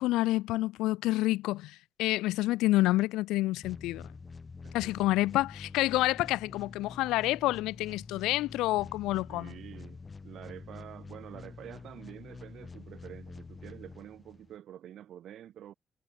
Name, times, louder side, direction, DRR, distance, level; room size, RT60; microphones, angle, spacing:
voice 1, 0.0-4.0 4.7-9.6, left 17 dB, 85° left, 0.6 m, -28 dB
sound 1, 3.6-14.6, left 4 dB, 35° left, 7.0 m, -47 dB
voice 2, 4.6-5.1 9.3-15.7, right 11 dB, 70° right, 7.2 m, -48 dB
supercardioid pair, 60°, 0 cm